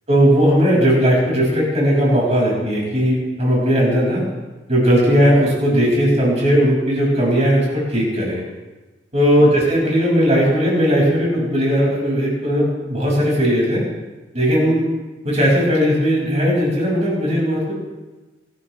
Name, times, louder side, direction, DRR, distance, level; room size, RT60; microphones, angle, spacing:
voice 1, 0.1-4.2 4.7-8.4 9.1-13.8 14.3-14.8 15.2-17.7, equal, 40° right, -4 dB, 5.6 m, -17 dB
18.5 x 13.5 x 3.3 m, 1.2 s
head